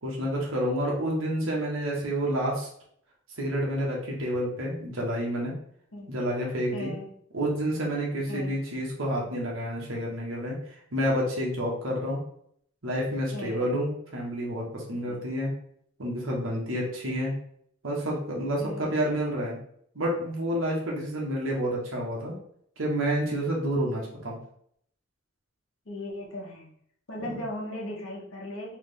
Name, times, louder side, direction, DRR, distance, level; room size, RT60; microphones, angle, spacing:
voice 1, 0.0-2.7 3.4-5.5 6.1-6.9 7.3-10.6 10.9-12.2 12.8-15.5 16.0-17.3 17.8-19.5 19.9-22.4 22.8-24.4 27.2-27.4, equal, 75° right, -3 dB, 1.3 m, -29 dB
voice 2, 6.7-7.1 8.3-8.5 13.3-13.8 15.0-15.2 18.6-19.2 25.9-26.7 27.1-28.8, left 1 dB, 75° left, -2 dB, 1.1 m, -38 dB
3.6 x 3.3 x 3.3 m, 0.66 s
head